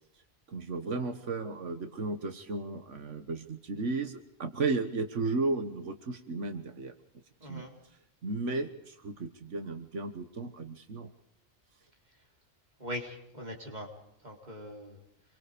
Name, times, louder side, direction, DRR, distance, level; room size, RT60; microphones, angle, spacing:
voice 1, 0.5-6.9 7.5-7.7 8.2-11.1, right 3 dB, 85° right, 8 dB, 1.7 m, -34 dB
voice 2, 12.8-13.9 14.2-15.0, equal, 35° right, 1 dB, 4.2 m, -41 dB
27.0 x 23.0 x 5.2 m, 0.78 s
omnidirectional pair, 1.2 m